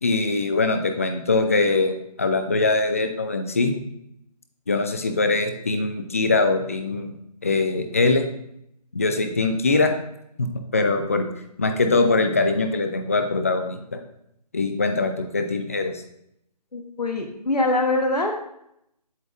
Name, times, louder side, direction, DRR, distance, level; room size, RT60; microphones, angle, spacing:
voice 1, 0.0-3.7 4.7-7.1 7.4-8.3 8.9-9.9 10.4-11.3 11.6-14.0 14.5-15.9, left 3 dB, 20° left, 6 dB, 0.4 m, -22 dB
voice 2, 16.7-18.4, left 2 dB, 75° left, 3 dB, 1.1 m, -23 dB
8.1 x 6.8 x 2.5 m, 0.76 s
figure-of-eight pair, 150°, 21 cm